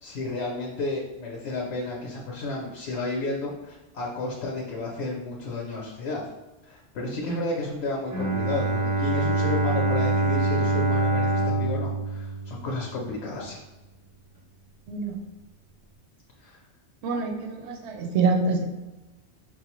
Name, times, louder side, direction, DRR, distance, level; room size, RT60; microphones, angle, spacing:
voice 1, 0.0-6.2 6.7-13.6 16.4-16.6, left 2 dB, 75° left, -2 dB, 0.8 m, -32 dB
Bowed string instrument, 8.1-13.0, right 2 dB, 25° right, 0.3 m, -25 dB
voice 2, 14.9-15.2 17.0-18.6, right 4 dB, 75° right, 3 dB, 0.8 m, -26 dB
4.5 x 2.0 x 2.9 m, 1.1 s
omnidirectional pair, 1.2 m